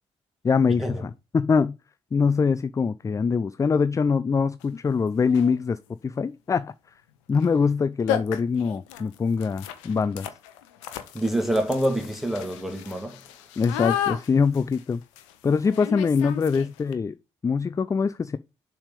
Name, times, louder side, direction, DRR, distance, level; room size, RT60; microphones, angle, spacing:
voice 1, 0.4-1.8 2.1-6.7 7.3-10.3 13.6-15.0 15.4-17.1 17.4-18.4, left 5 dB, 20° left, 0.4 m, -23 dB
sound 1, 4.6-4.7 5.3-5.6 7.3-7.5 7.7-7.8 8.1-16.9, left 11 dB, 75° left, 0.7 m, -34 dB
voice 2, 11.1-13.2, right 1 dB, ahead, 1.8 m, -26 dB
7.0 x 3.4 x 5.2 m
figure-of-eight pair, 40°, 16 cm